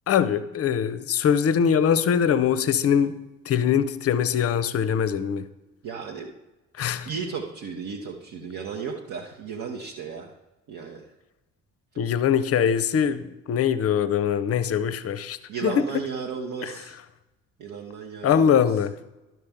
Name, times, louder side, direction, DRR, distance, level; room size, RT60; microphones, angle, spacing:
voice 1, 0.1-3.2 3.5-5.5 6.8-7.1 12.0-16.1 16.6-16.7 18.2-18.9, left 8 dB, 40° left, 0.6 m, -22 dB
voice 2, 5.8-6.3 7.1-10.3 10.7-11.1 15.5-17.0 17.6-18.6, right 5 dB, 55° right, 1.0 m, -34 dB
11.5 x 5.9 x 3.5 m
hypercardioid pair, 45°, 38 cm